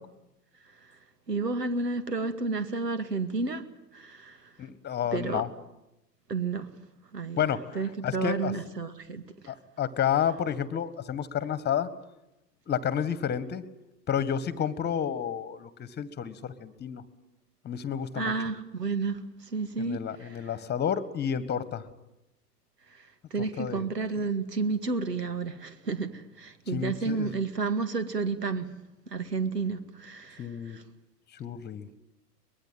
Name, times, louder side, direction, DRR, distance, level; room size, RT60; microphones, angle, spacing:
voice 1, 1.3-3.6 3.9-4.5 5.1-5.4 6.3-6.7 7.1-9.5 18.2-20.5 22.9-28.7 29.1-30.8, right 4 dB, 80° right, 11 dB, 2.2 m, -31 dB
voice 2, 4.6-5.5 7.4-8.5 9.5-11.9 12.7-13.6 14.1-17.0 17.7-18.3 19.8-21.8 23.6-23.9 26.7-27.3 30.4-30.8 31.4-31.9, left 8 dB, 20° left, 16 dB, 1.7 m, -30 dB
23.5 x 21.5 x 9.1 m, 0.91 s
figure-of-eight pair, 95°, 48 cm